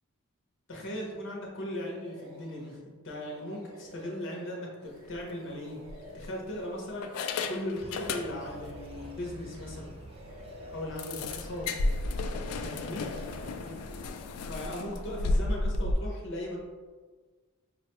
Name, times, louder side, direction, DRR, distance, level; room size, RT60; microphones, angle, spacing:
voice 1, 0.7-5.8 6.1-7.1 7.5-9.9 10.7-11.7 12.6-13.0 13.6-13.7 14.5-16.6, left 1 dB, 60° left, -2 dB, 0.7 m, -38 dB
sound 1, 1.8-2.8 3.2-9.8 10.1-12.1 12.3-13.8, equal, 65° right, 0.7 m, -50 dB
sound 2, 5.0-5.2 5.9-6.5 7.0-8.7 9.0-9.1 9.5-9.6 10.0-10.1 11.0-15.9, left 2 dB, 85° left, 0.3 m, -33 dB
sound 3, 7.8-14.1, equal, 25° right, 0.4 m, -48 dB
5.4 x 2.2 x 2.9 m, 1.4 s
head